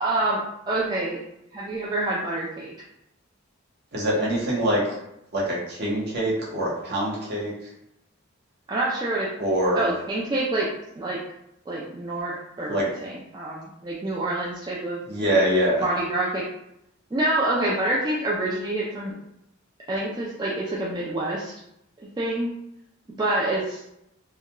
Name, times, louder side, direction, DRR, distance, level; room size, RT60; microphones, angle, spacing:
voice 1, 0.0-1.2 1.5-2.7 8.7-9.3 9.8-10.7 11.0-11.2 11.7-15.4 15.8-16.4 17.1-19.2 19.9-21.5 22.2-22.5 23.2-23.8, right 2 dB, 20° right, -6 dB, 0.3 m, -27 dB
voice 2, 3.9-4.8 5.3-7.5 9.4-9.9 12.7-12.9 15.1-15.8, right 1 dB, 55° right, -5 dB, 0.9 m, -24 dB
2.3 x 2.2 x 2.9 m, 0.81 s
head